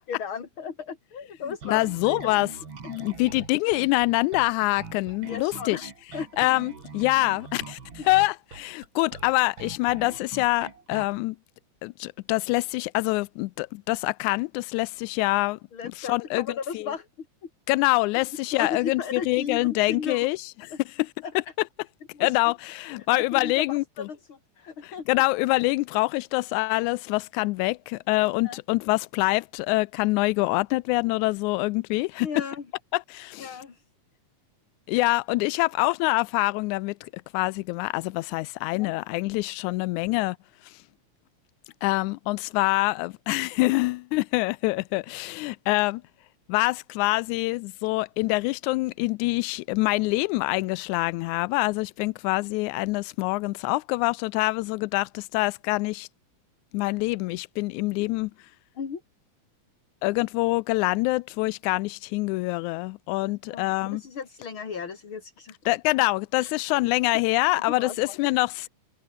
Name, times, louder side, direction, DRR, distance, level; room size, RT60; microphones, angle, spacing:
voice 1, 0.0-2.4 5.3-5.9 6.1-6.3 8.0-8.1 15.7-17.5 18.5-20.3 20.7-20.8 21.2-21.3 22.1-22.4 23.0-25.2 28.4-28.6 32.2-32.7 33.4-33.8 38.7-38.9 58.8-59.0 63.5-65.5 66.4-66.5 67.7-68.2, left 6 dB, 45° left, 3.5 m, -36 dB
Bass guitar, 1.6-11.2, right 5 dB, 40° right, 3.7 m, -42 dB
voice 2, 1.7-2.5 2.9-5.8 6.4-7.8 8.1-11.4 11.8-15.6 16.0-16.5 16.7-16.9 17.7-20.4 22.2-24.1 24.8-32.3 32.9-33.5 34.9-40.4 41.8-46.0 46.5-56.1 56.7-58.3 60.0-64.0 65.7-68.7, left 22 dB, 90° left, 2.0 m, -25 dB
omnidirectional pair, 3.3 m